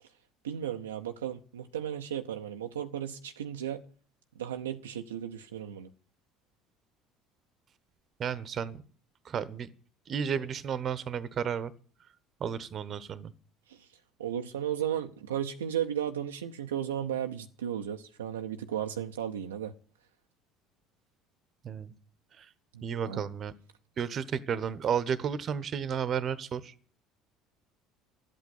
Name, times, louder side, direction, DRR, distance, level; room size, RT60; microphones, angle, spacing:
voice 1, 0.4-3.8 4.4-5.9 13.7-13.9 14.2-19.7 22.7-23.2, right 10 dB, 75° right, 0.6 m, -35 dB
voice 2, 8.2-8.8 9.2-9.7 10.1-11.7 12.4-13.3 21.6-21.9 22.4-22.5 22.8-23.5 24.0-26.7, right 7 dB, 40° right, 1.0 m, -32 dB
12.5 x 8.4 x 9.6 m
figure-of-eight pair, 60°, 0 cm